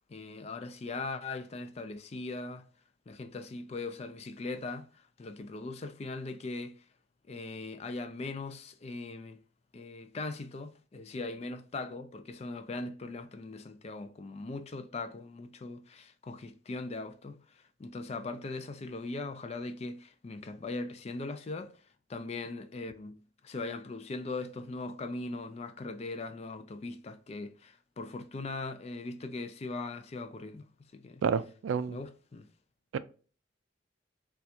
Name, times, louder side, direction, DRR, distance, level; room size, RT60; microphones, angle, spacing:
voice 1, 0.1-2.7 3.1-6.8 7.3-9.4 9.7-21.7 22.1-30.7 30.9-31.2 31.9-32.5, left 3 dB, 30° left, 0.3 m, -40 dB
voice 2, 31.2-32.0 32.9-33.0, right 6 dB, 75° right, 0.3 m, -29 dB
4.2 x 2.3 x 2.5 m
head